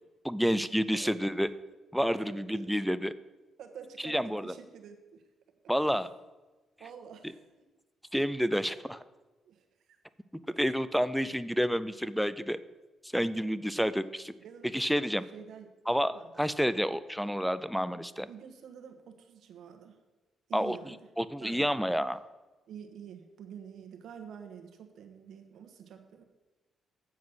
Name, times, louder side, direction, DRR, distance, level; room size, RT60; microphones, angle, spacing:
voice 1, 0.2-1.5 1.9-3.1 4.0-4.5 5.7-6.1 8.1-9.0 10.6-12.6 13.1-14.3 14.7-15.2 15.9-18.3 20.5-20.8 21.2-22.2, equal, ahead, 14 dB, 0.4 m, -29 dB
voice 2, 0.9-1.2 2.1-2.7 3.6-5.2 6.8-7.4 9.5-10.0 13.7-13.9 14.4-15.0 15.3-15.7 16.1-16.3 18.3-20.0 20.5-21.0 21.4-21.7 22.7-26.2, right 7 dB, 75° right, 5 dB, 1.2 m, -48 dB
7.9 x 7.3 x 6.1 m, 1.2 s
cardioid pair, 115°, 0 cm